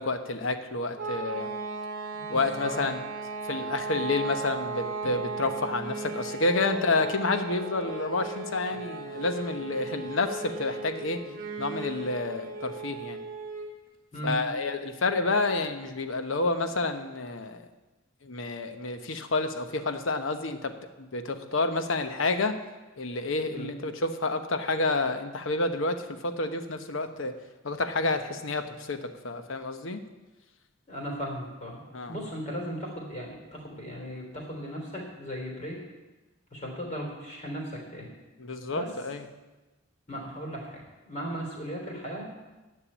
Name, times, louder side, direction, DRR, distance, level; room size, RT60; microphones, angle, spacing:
voice 1, 0.0-1.5 2.3-3.0 3.5-11.2 11.6-13.2 14.2-17.6 18.2-20.7 21.0-22.6 23.0-27.3 27.6-30.0 31.9-32.1 38.4-39.2, left 3 dB, 75° left, 8 dB, 1.0 m, -29 dB
sound 1, 1.0-13.8, right 3 dB, 45° right, 1.1 m, -36 dB
voice 2, 2.1-2.9 6.7-6.8 8.7-8.8 9.1-9.2 11.2-11.4 14.1-14.4 23.5-23.7 30.9-31.8 32.1-35.8 36.5-38.1 38.7-38.9 40.1-42.2, equal, 35° left, -1 dB, 3.4 m, -37 dB
10.0 x 6.8 x 8.6 m, 1.2 s
head